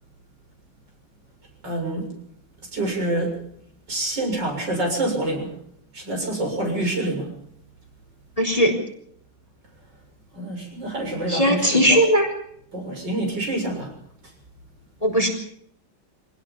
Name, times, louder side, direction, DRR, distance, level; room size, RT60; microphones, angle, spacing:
voice 1, 1.6-2.1 2.7-3.4 3.9-5.5 5.9-7.3 10.3-12.0 12.7-13.9, right 1 dB, 60° right, 2 dB, 7.7 m, -27 dB
voice 2, 8.4-8.7 11.3-12.3 15.0-15.3, equal, 15° left, 3 dB, 4.2 m, -18 dB
25.5 x 19.0 x 5.4 m, 0.68 s
omnidirectional pair, 2.1 m